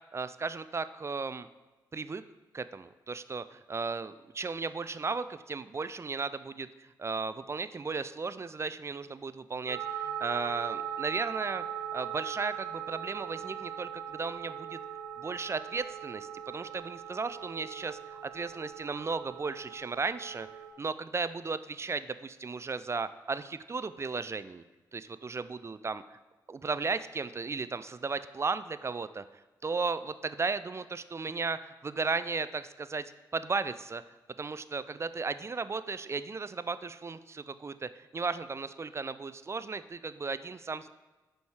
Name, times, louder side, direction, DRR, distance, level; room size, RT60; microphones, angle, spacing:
voice 1, 0.1-1.5 1.9-2.2 2.5-11.6 11.9-14.8 15.2-20.5 20.8-24.6 24.9-26.2 26.5-29.2 29.6-34.0 34.4-40.9, right 4 dB, 30° right, 14 dB, 0.3 m, -35 dB
sound 1, 9.7-20.7, right 9 dB, 70° right, 1.0 m, -40 dB
5.1 x 4.9 x 4.7 m, 1.2 s
hypercardioid pair, 40°, 9 cm